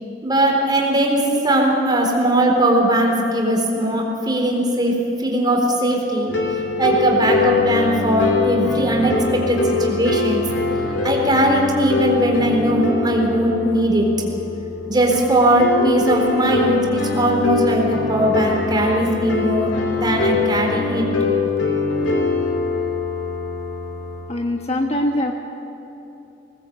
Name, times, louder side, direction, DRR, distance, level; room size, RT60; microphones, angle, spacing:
voice 1, 0.2-6.3 6.8-10.5 11.0-14.1 14.9-21.1, right 1 dB, 25° right, 0 dB, 4.1 m, -19 dB
sound 1, 6.3-24.3, left 4 dB, 80° left, 3.3 m, -23 dB
voice 2, 24.3-25.3, left 1 dB, 35° left, 2 dB, 1.5 m, -22 dB
20.5 x 19.5 x 8.3 m, 3.0 s
head